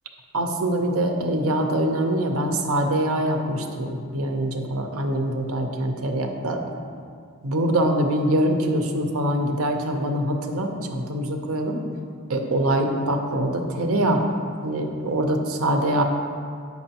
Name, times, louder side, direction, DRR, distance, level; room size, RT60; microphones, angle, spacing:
voice 1, 0.3-6.6 7.4-11.8 12.3-14.2 14.6-16.0, right 1 dB, 75° right, 3 dB, 0.7 m, -24 dB
7.9 x 6.0 x 2.9 m, 2.2 s
head